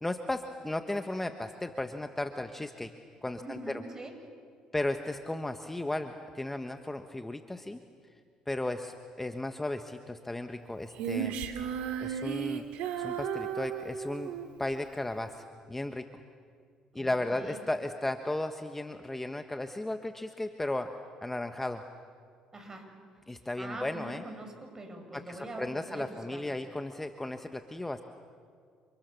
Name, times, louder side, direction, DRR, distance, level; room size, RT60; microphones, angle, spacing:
voice 1, 0.0-2.9 3.2-3.8 4.7-7.8 8.5-11.4 12.0-12.7 13.0-14.3 14.6-16.1 16.9-20.9 21.2-21.8 23.3-24.2 25.1-28.0, left 2 dB, 10° left, 7 dB, 1.3 m, -35 dB
voice 2, 3.4-4.2 16.9-17.6 22.5-23.0 23.6-26.4, right 2 dB, 25° right, 4 dB, 7.2 m, -43 dB
Female singing, 10.9-14.5, right 8 dB, 80° right, 2.6 m, -34 dB
29.0 x 28.0 x 7.1 m, 2.1 s
supercardioid pair, 75°, 2 cm